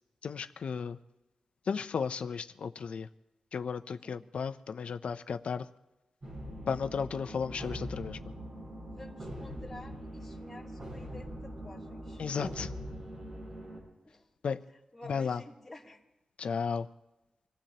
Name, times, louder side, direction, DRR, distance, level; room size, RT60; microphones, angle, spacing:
voice 1, 0.2-1.0 1.7-3.1 3.5-5.7 6.7-8.2 12.2-12.7 14.4-14.6 15.1-15.4 16.4-16.9, left 6 dB, 65° left, 11 dB, 0.5 m, -34 dB
sound 1, 6.2-13.8, equal, 45° right, 7.3 m, -42 dB
voice 2, 8.8-12.2 14.0-14.3 14.9-16.0, left 1 dB, 10° left, -7 dB, 2.9 m, -50 dB
26.0 x 16.5 x 2.9 m, 1.0 s
wide cardioid pair, 115°, 2 cm